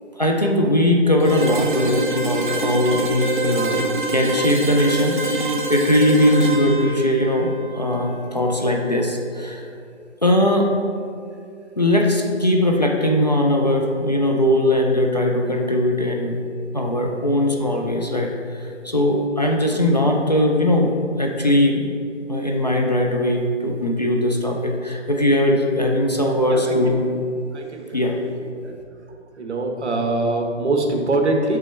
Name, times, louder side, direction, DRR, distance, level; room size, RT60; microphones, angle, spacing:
voice 1, 0.2-9.6 10.2-10.7 11.8-16.4 16.7-18.3 18.6-21.9 22.3-27.1 27.9-28.2, left 1 dB, 35° left, 0 dB, 0.4 m, -20 dB
sound 1, 1.2-9.0, right 3 dB, 40° right, 0.5 m, -26 dB
voice 2, 26.5-26.9 27.5-28.0 28.6-28.8 29.4-31.6, right 2 dB, 65° right, 2 dB, 1.0 m, -23 dB
6.2 x 5.3 x 3.2 m, 2.4 s
figure-of-eight pair, 155°, 36 cm